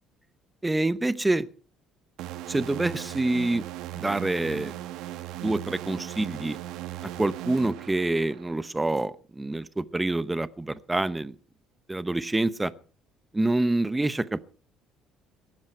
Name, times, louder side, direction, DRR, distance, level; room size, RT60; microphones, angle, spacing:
voice 1, 0.6-1.5 2.5-3.7 4.0-4.7 5.4-6.6 7.2-11.3 11.9-12.7 13.3-14.4, right 2 dB, 10° right, 17 dB, 0.8 m, -26 dB
sound 1, 2.2-8.7, right 13 dB, 80° right, 1.6 m, -38 dB
18.5 x 13.5 x 4.6 m, 0.39 s
cardioid pair, 115°, 0 cm